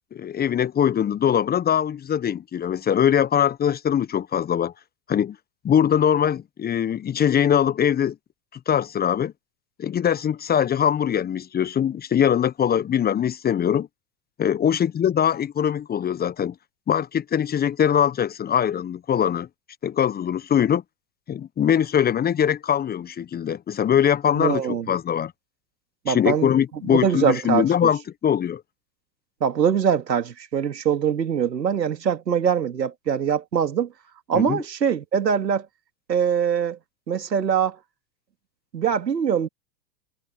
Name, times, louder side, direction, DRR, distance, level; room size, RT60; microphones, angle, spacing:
voice 1, 0.1-4.7 5.1-5.4 5.6-8.1 8.7-9.3 9.8-13.9 14.4-16.5 16.9-19.5 19.8-20.8 21.3-24.6 24.9-25.3 26.1-28.6 34.3-34.6, left 9 dB, 20° left, 1.2 m, -22 dB
voice 2, 24.3-24.9 26.0-26.5 26.8-27.9 29.4-33.9 34.3-35.7 36.1-36.8 37.1-37.8 38.7-39.5, right 8 dB, 75° right, 3.1 m, -23 dB
figure-of-eight pair, 95°, 50 cm